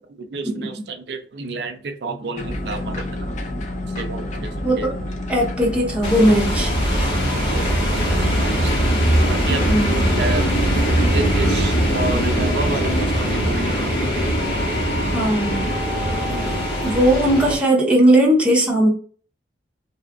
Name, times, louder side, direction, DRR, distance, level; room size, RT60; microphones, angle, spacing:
voice 1, 0.1-3.3 4.0-4.9 7.4-8.8 9.3-10.5 11.0-14.1 16.3-16.6, right 3 dB, 65° right, 6 dB, 0.4 m, -30 dB
sound 1, 2.4-12.1, left 1 dB, 40° left, 0.5 m, -29 dB
voice 2, 4.6-4.9 5.3-6.7 9.7-10.0 15.1-15.7 16.8-18.9, right 1 dB, 5° right, -2 dB, 0.7 m, -18 dB
sound 2, 6.0-17.6, equal, 70° left, 1.2 m, -21 dB
2.7 x 2.4 x 3.4 m, 0.43 s
head